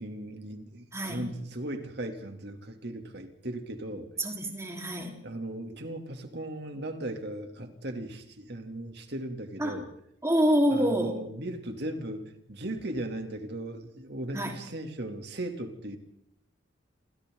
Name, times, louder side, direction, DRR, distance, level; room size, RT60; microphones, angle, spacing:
voice 1, 0.0-4.1 5.2-9.9 10.7-16.0, right 1 dB, 55° right, 3.1 m, -37 dB
voice 2, 0.9-1.3 4.2-5.1 9.6-9.8 10.2-11.2 14.3-14.6, equal, 15° right, 4.3 m, -27 dB
29.0 x 27.0 x 4.0 m
head